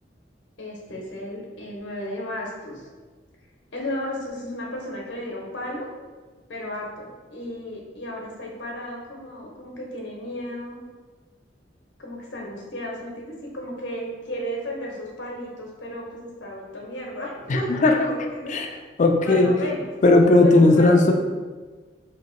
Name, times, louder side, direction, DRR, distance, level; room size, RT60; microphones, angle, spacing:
voice 1, 0.6-2.9 3.7-5.9 6.5-10.8 12.0-18.5 19.2-19.9 20.4-21.1, left 1 dB, 75° left, -2 dB, 0.8 m, -34 dB
voice 2, 17.5-18.7 19.0-19.5 20.0-21.1, left 2 dB, 45° left, 4 dB, 0.4 m, -17 dB
2.9 x 2.8 x 4.3 m, 1.4 s
head